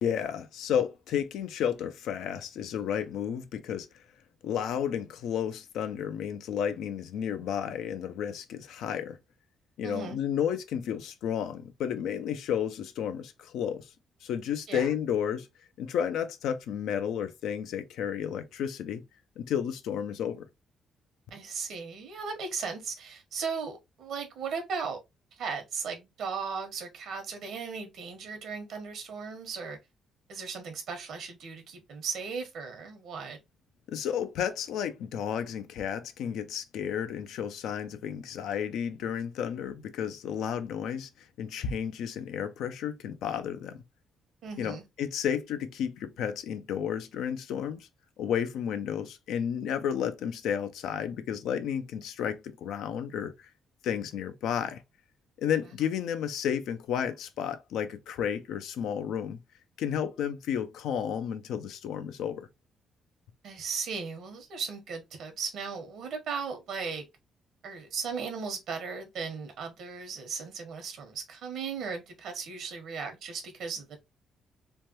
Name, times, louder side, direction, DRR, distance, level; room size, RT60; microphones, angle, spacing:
voice 1, 0.0-3.9 4.4-9.2 9.8-13.9 14.2-15.5 15.8-19.0 19.4-20.5 33.9-43.8 44.6-47.9 48.2-53.5 53.8-54.8 55.4-59.4 59.8-62.5, left 8 dB, 85° left, 0.5 m, -32 dB
voice 2, 9.8-10.2 14.7-14.9 21.3-25.0 25.4-29.8 30.3-33.4 44.4-44.8 63.4-67.1 67.6-74.0, right 5 dB, 75° right, 1.1 m, -36 dB
3.2 x 2.2 x 2.8 m
cardioid pair, 90°, 0 cm